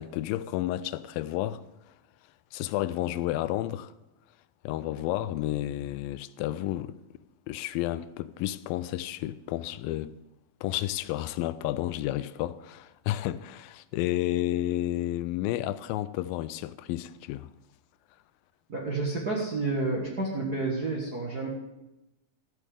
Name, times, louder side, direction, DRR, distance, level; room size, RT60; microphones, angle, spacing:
voice 1, 0.0-1.6 2.5-3.9 4.6-6.9 7.5-10.1 10.6-17.5, left 14 dB, 85° left, 2.3 m, -31 dB
voice 2, 18.7-21.5, right 3 dB, 45° right, 1.3 m, -30 dB
14.0 x 6.3 x 8.3 m
omnidirectional pair, 4.1 m